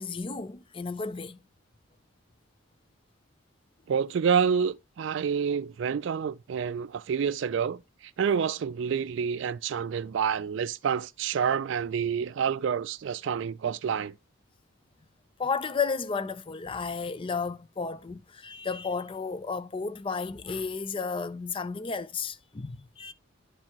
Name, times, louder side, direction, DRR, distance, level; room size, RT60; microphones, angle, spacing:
voice 1, 0.0-1.4 15.4-23.1, left 5 dB, 25° left, 0.4 m, -33 dB
voice 2, 3.9-14.2, right 7 dB, 60° right, 0.3 m, -28 dB
10.5 x 4.5 x 2.9 m
head